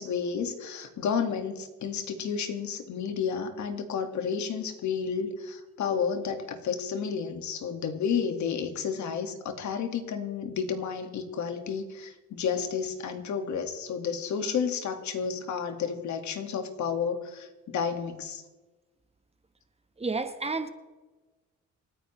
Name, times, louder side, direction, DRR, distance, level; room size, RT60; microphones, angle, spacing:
voice 1, 0.0-18.4, left 6 dB, 70° left, 1.9 m, -31 dB
voice 2, 20.0-20.7, right 3 dB, 20° right, 1.2 m, -30 dB
28.0 x 10.0 x 3.2 m
cardioid pair, 90°, 30 cm